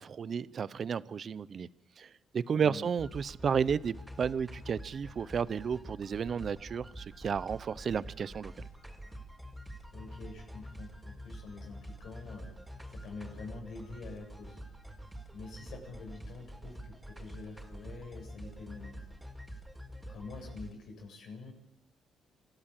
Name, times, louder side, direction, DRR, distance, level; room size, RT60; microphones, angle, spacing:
voice 1, 0.0-1.7 2.0-8.7, right 7 dB, 50° right, 0.7 m, -32 dB
sound 1, 3.0-20.7, equal, 5° right, 4.8 m, -46 dB
voice 2, 9.9-12.5 12.9-14.6 15.3-19.1 20.1-21.5, left 4 dB, 70° left, 7.9 m, -46 dB
27.5 x 13.5 x 9.0 m
cardioid pair, 90°, 0 cm